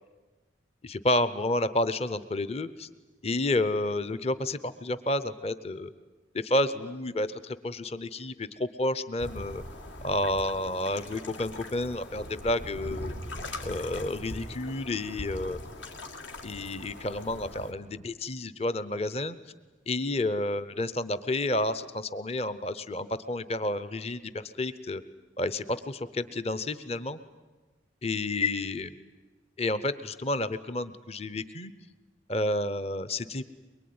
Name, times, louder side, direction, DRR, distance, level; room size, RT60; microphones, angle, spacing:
voice 1, 0.8-2.9 3.2-5.9 6.3-9.6 10.0-13.2 13.6-15.6 16.4-19.4 19.9-25.0 25.4-27.2 28.0-28.9 29.6-31.7 32.3-33.4, left 2 dB, 30° left, 14 dB, 0.8 m, -30 dB
sound 1, 9.2-17.7, left 1 dB, 75° left, 2.4 m, -41 dB
23.0 x 22.5 x 9.5 m, 1.2 s
head